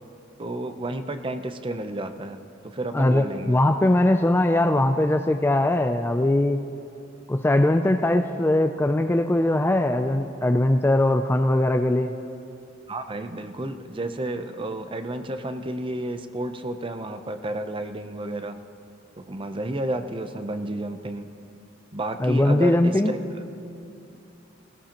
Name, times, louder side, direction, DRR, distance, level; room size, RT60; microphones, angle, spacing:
voice 1, 0.4-2.4 2.6-3.6 12.9-18.6 19.2-21.3 21.9-23.2, right 1 dB, 25° right, 8 dB, 0.6 m, -31 dB
voice 2, 2.9-6.6 7.3-12.1 22.2-23.1, left 1 dB, 10° left, 6 dB, 0.3 m, -21 dB
19.5 x 18.0 x 2.9 m, 2.6 s
head